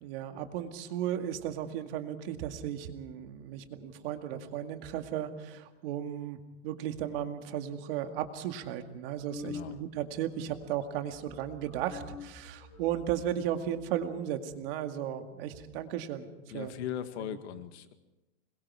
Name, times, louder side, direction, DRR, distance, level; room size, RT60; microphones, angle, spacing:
voice 1, 0.0-6.4 6.6-16.3 16.5-16.7, right 10 dB, 55° right, 6 dB, 2.2 m, -35 dB
sound 1, 9.2-10.1 10.4-10.7 10.9-14.1, left 4 dB, 10° left, 4.2 m, -46 dB
voice 2, 9.4-9.8 16.5-17.9, left 10 dB, 70° left, 9 dB, 1.9 m, -39 dB
26.5 x 22.0 x 4.8 m, 1.0 s
supercardioid pair, 155°, 34 cm